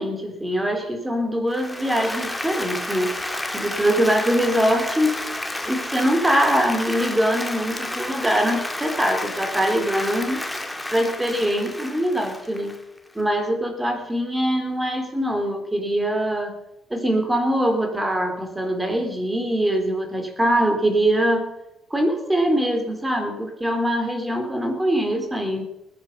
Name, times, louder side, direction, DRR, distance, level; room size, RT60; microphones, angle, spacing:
voice 1, 0.0-3.2 3.5-5.2 5.6-10.4 10.9-12.8 13.2-16.5 16.9-21.5 21.9-25.6, equal, 10° right, 4 dB, 3.5 m, -23 dB
Applause, 1.5-13.2, left 1 dB, 5° left, 2.0 m, -31 dB
20.0 x 9.8 x 5.8 m, 0.88 s
cardioid pair, 115°, 0 cm